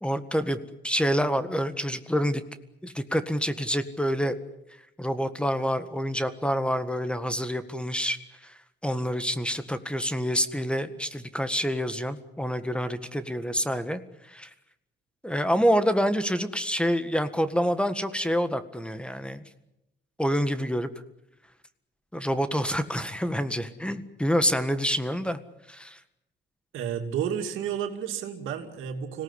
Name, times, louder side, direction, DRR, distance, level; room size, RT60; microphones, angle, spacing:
voice 1, 0.0-0.6 0.8-2.4 2.8-4.4 5.0-8.2 8.4-8.6 8.8-14.0 14.3-14.5 15.2-19.4 20.2-20.9 22.1-25.4 25.7-26.0, equal, 5° left, 11 dB, 1.7 m, -27 dB
voice 2, 26.7-29.2, right 8 dB, 90° right, 5 dB, 2.7 m, -31 dB
25.5 x 18.5 x 9.9 m, 0.88 s
cardioid pair, 90°, 20 cm